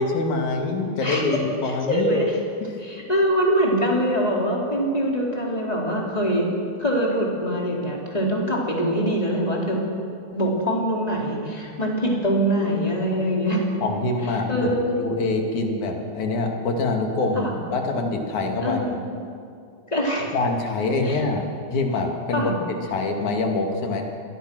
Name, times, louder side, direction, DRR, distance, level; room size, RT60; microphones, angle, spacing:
voice 1, 0.0-2.2 2.6-2.7 13.8-14.7 15.0-19.0 20.3-22.6 22.9-24.2, left 3 dB, 80° left, 2 dB, 3.8 m, -25 dB
voice 2, 1.7-2.3 2.8-6.5 6.8-9.8 10.3-13.6 14.5-15.0 17.4-17.5 18.6-19.0 19.9-20.3 21.0-21.2 22.3-22.5, equal, 10° left, -2 dB, 4.0 m, -23 dB
26.5 x 21.0 x 6.3 m, 2.4 s
omnidirectional pair, 3.4 m